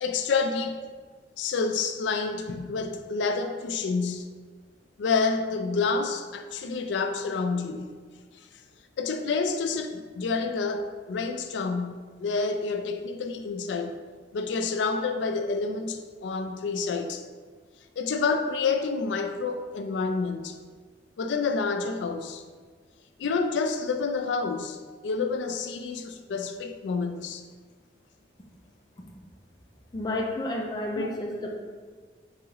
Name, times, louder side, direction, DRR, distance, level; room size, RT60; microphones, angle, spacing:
voice 1, 0.0-0.8 1.4-4.3 5.0-7.9 8.3-8.5 9.0-14.0 14.3-17.2 18.0-20.6 21.2-22.4 23.2-27.4 31.0-31.1, left 4 dB, 80° left, 7 dB, 0.4 m, -28 dB
voice 2, 29.9-31.6, left 1 dB, 20° left, 0 dB, 0.5 m, -30 dB
4.0 x 3.5 x 3.0 m, 1.5 s
head